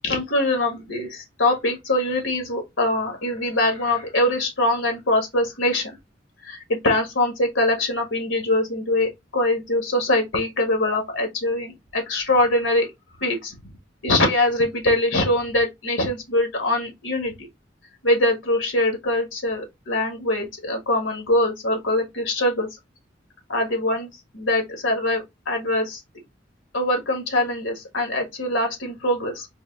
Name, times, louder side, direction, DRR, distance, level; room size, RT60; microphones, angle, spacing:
voice 1, 0.0-5.9 6.4-12.9 13.2-13.7 14.0-17.3 18.0-22.7 23.5-24.1 24.3-26.0 26.7-29.5, left 1 dB, 80° left, 1.6 m, -23 dB
3.9 x 2.5 x 3.6 m
head